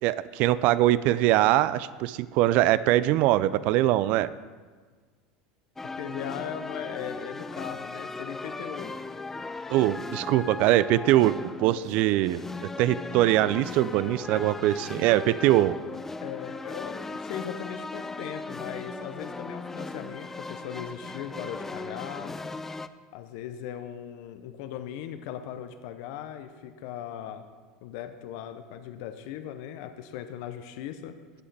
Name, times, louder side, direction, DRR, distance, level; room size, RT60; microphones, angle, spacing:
voice 1, 0.0-4.3 9.7-12.4 12.8-15.8, right 14 dB, 60° right, 17 dB, 0.3 m, -22 dB
voice 2, 5.8-9.0 16.2-22.4 23.1-27.5 27.8-31.1, left 10 dB, 70° left, 9 dB, 0.6 m, -38 dB
sound 1, 5.8-22.9, left 3 dB, 15° left, 0.3 m, -38 dB
16.5 x 5.5 x 3.4 m, 1.5 s
hypercardioid pair, 95°, 3 cm